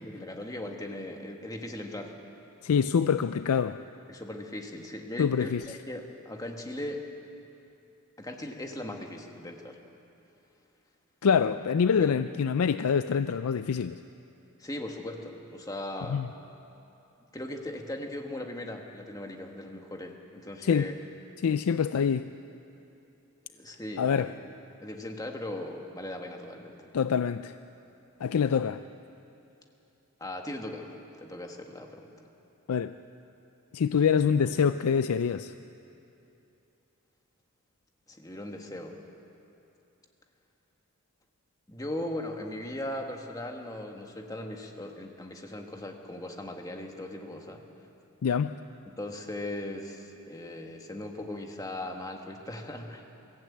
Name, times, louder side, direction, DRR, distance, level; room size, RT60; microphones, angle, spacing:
voice 1, 0.0-2.2 4.1-7.0 8.2-9.8 11.9-12.2 14.6-16.2 17.3-20.9 23.5-24.3 24.8-26.8 30.2-30.9 31.2-32.1 38.1-39.0 41.7-47.6 48.8-53.1, left 1 dB, 15° left, 3 dB, 1.5 m, -38 dB
voice 2, 2.6-3.8 5.2-5.8 11.2-14.0 16.1-16.3 20.6-20.9 21.4-22.3 24.0-24.3 26.9-27.5 28.2-28.8 32.7-32.9 33.7-35.5 48.2-48.6, left 6 dB, 85° left, 11 dB, 0.4 m, -25 dB
22.5 x 15.0 x 8.6 m, 2.9 s
head